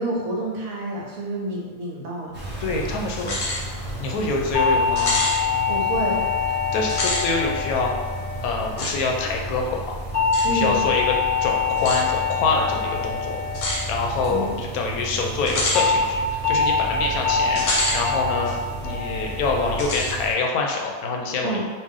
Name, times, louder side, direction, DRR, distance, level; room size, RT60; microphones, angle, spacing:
voice 1, 0.0-2.4 5.7-6.2 10.4-10.8 14.3-14.6 21.4-21.7, right 2 dB, 70° right, -3 dB, 1.2 m, -28 dB
sound 1, 2.3-20.3, right 2 dB, 10° right, 0.6 m, -34 dB
voice 2, 2.6-3.4 4.0-5.2 6.7-7.9 8.4-9.9 10.4-13.4 13.8-17.6 17.9-18.6 18.8-21.6, left 3 dB, 80° left, 0 dB, 1.0 m, -25 dB
sound 2, 3.2-3.6 4.0-4.1 5.0-5.4 6.8-7.3 8.8-8.9 10.3-10.5 11.8-12.0 13.5-13.8 15.5-15.9 17.5-18.0 18.5-18.6 19.8-20.2, left 2 dB, 55° left, 1.0 m, -26 dB
sound 3, 4.5-9.0 10.1-14.6 15.7-16.0 16.4-16.8 17.2-17.6 18.0-18.4 18.8-19.2 19.6-20.0, left 6 dB, 5° left, 1.3 m, -25 dB
3.3 x 2.5 x 3.6 m, 1.4 s
omnidirectional pair, 1.5 m